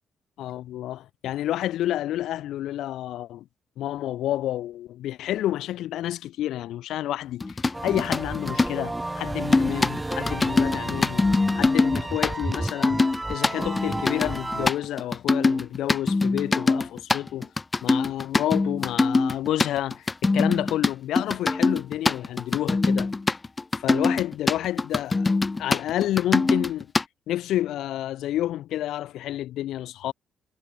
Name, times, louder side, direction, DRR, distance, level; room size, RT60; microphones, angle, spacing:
voice 1, 0.4-3.5 3.8-11.3 11.5-13.0 13.3-17.5 17.8-23.1 23.8-25.3 25.6-26.9 27.3-30.1, left 13 dB, 80° left, 4.2 m, -29 dB
sound 1, 7.4-8.7 9.5-27.0, left 3 dB, 25° left, 4.3 m, -23 dB
sound 2, 7.7-14.7, right 2 dB, 15° right, 3.8 m, -32 dB
cardioid pair, 90°, 0 cm